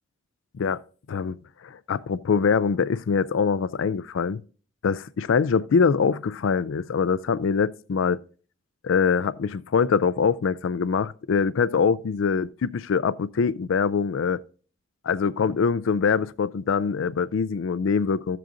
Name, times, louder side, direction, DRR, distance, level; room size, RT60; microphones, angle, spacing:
voice 1, 1.6-4.4 4.8-8.2 8.8-14.4 15.0-18.4, left 6 dB, 80° left, 0.4 m, -23 dB
14.5 x 7.7 x 2.5 m
head